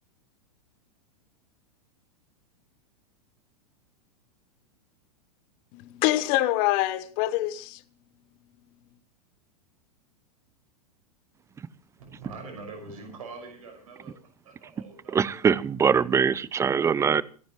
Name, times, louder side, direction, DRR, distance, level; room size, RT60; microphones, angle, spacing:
voice 1, 5.7-7.8, left 16 dB, 45° left, 1.1 m, -25 dB
voice 2, 12.0-14.2 14.4-15.4, right 3 dB, 65° right, 5.9 m, -43 dB
voice 3, 15.1-17.2, right 6 dB, 15° right, 0.6 m, -22 dB
28.0 x 10.5 x 3.1 m
figure-of-eight pair, 95°, 19 cm